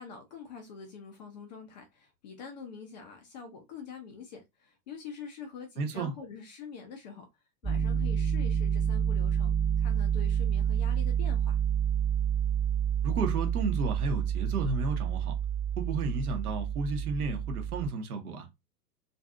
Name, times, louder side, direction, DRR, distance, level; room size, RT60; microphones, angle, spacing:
voice 1, 0.0-7.3 7.6-9.5 9.8-11.6, left 6 dB, 30° left, 0.4 m, -45 dB
voice 2, 5.8-6.1 13.0-15.3 15.8-18.5, right 3 dB, 60° right, 0.9 m, -33 dB
Piano, 7.6-17.9, right 8 dB, 20° right, 1.1 m, -29 dB
2.5 x 2.5 x 2.2 m
figure-of-eight pair, 100°, 49 cm